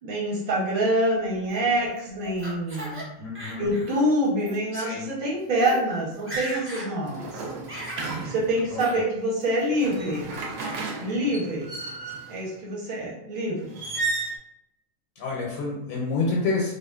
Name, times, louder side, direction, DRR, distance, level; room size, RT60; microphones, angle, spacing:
voice 1, 0.0-3.0 3.6-7.4 8.2-10.3 11.0-11.7 12.3-13.7, right 1 dB, 45° right, -4 dB, 0.9 m, -26 dB
Laughter, 1.5-3.0 3.3-4.0 4.4-4.6 5.2-5.3 5.5-5.8 6.1-6.9 7.2-8.2 8.8-9.0 9.4-9.9 10.3-10.8, right 1 dB, 20° right, 0.4 m, -38 dB
voice 2, 3.2-3.7 4.7-5.1 8.9-9.0 15.2-16.7, left 3 dB, 80° left, -3 dB, 1.0 m, -28 dB
sound 1, 7.0-8.8 9.6-12.4 13.7-14.4, right 3 dB, 80° right, 1.0 m, -33 dB
2.4 x 2.4 x 2.3 m, 0.85 s
omnidirectional pair, 1.4 m